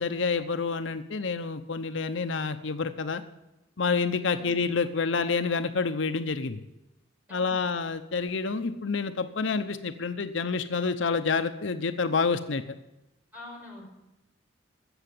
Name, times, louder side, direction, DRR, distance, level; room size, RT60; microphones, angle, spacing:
voice 1, 0.0-3.2 3.8-6.6 7.3-12.6, left 4 dB, 70° left, 9 dB, 0.8 m, -28 dB
voice 2, 7.3-7.6 13.3-13.9, left 2 dB, 10° right, -2 dB, 5.0 m, -45 dB
16.0 x 6.9 x 10.0 m, 0.96 s
head